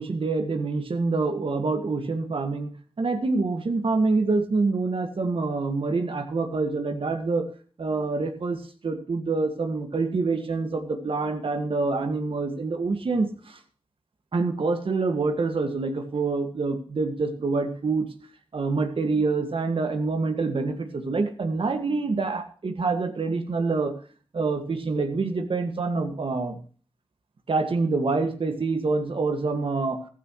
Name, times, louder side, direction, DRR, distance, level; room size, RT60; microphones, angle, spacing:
voice 1, 0.0-2.7 3.0-7.5 7.8-13.3 14.3-18.1 18.5-23.9 24.3-26.6 27.5-30.0, right 3 dB, 65° right, 7 dB, 1.9 m, -26 dB
14.5 x 13.0 x 3.2 m, 0.39 s
cardioid pair, 50°, 10 cm